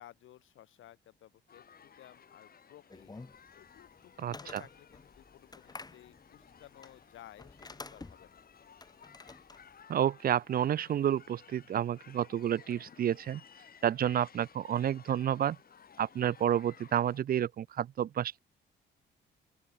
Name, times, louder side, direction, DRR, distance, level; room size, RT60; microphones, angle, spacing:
voice 1, 0.0-3.2 3.5-8.4, left 13 dB, 80° left, 5.8 m, -56 dB
sound 1, 1.5-17.2, left 7 dB, 50° left, 3.9 m, -57 dB
sound 2, 2.9-9.8, left 3 dB, 20° left, 2.3 m, -50 dB
voice 2, 4.2-4.6 9.9-13.4 13.8-15.6 16.0-18.4, right 10 dB, 50° right, 0.5 m, -30 dB
open air
cardioid pair, 90°, 20 cm